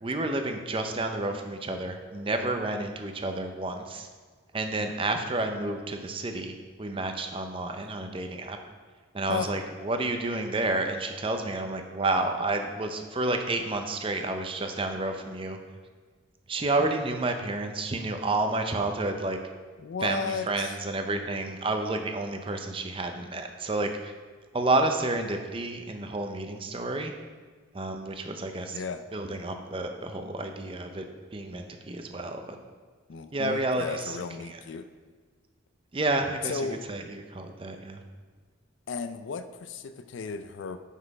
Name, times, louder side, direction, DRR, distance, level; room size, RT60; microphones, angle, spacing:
voice 1, 0.0-4.1 4.5-8.6 9.1-15.6 16.5-19.4 20.0-24.2 24.5-27.1 27.7-28.8 29.1-31.0 31.3-32.6 33.3-34.2 34.4-34.6 35.9-38.0, right 2 dB, 25° right, 5 dB, 0.5 m, -30 dB
voice 2, 19.8-20.8 28.7-29.0 33.1-34.9 36.4-36.8 38.9-40.8, left 5 dB, 65° left, 10 dB, 0.4 m, -34 dB
6.0 x 5.5 x 4.8 m, 1.5 s
head